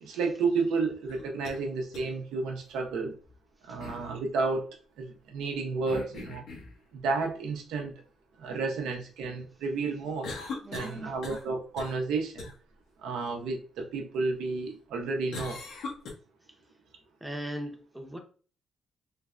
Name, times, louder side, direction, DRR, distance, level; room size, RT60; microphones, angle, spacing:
voice 1, 0.0-3.1 3.6-4.7 5.0-6.4 6.9-7.9 8.4-10.3 10.7-12.5 13.0-15.6, right 4 dB, 90° right, 0.6 m, -31 dB
sound 1, 1.1-1.6 1.9-2.0 3.8-4.1 5.9-6.8 10.2-11.5 11.8-12.0 12.4-12.5 15.3-16.1, left 3 dB, 75° left, 0.7 m, -39 dB
voice 2, 10.6-11.2 17.2-18.2, right 1 dB, 5° right, 0.6 m, -39 dB
3.2 x 2.1 x 2.4 m
cardioid pair, 90°, 0 cm